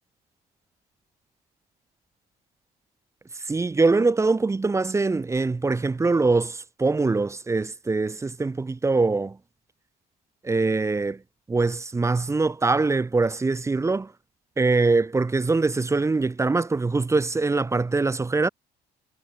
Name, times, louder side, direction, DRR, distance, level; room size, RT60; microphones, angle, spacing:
voice 1, 3.4-9.4 10.4-11.2 11.5-14.1 14.6-18.5, right 3 dB, 15° right, 0.9 m, -23 dB
cardioid pair, 110°, 17 cm